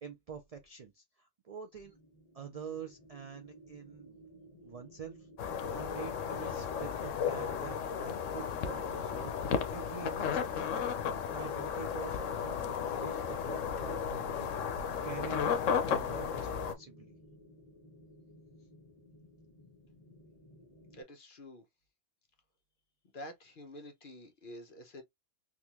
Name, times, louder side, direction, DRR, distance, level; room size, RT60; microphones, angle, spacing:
voice 1, 0.0-1.9 2.3-4.2 4.6-5.3 5.7-9.4 9.7-14.5 15.0-15.5 15.8-17.1, right 6 dB, 55° right, 0.4 m, -46 dB
sound 1, 1.8-21.0, right 1 dB, 30° left, 1.5 m, -57 dB
sound 2, 5.4-16.7, left 7 dB, 85° left, 1.0 m, -34 dB
voice 2, 20.9-21.7 23.1-25.0, left 1 dB, 45° left, 1.0 m, -48 dB
3.6 x 2.5 x 2.9 m
omnidirectional pair, 1.3 m